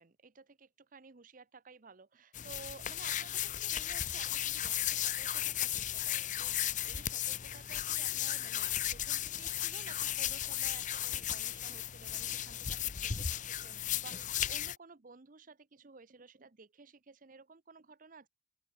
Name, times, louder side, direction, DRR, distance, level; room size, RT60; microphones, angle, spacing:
voice 1, 0.0-18.3, right 4 dB, 45° right, 0.8 m, -55 dB
sound 1, 2.3-14.8, left 11 dB, 45° left, 0.8 m, -35 dB
open air
head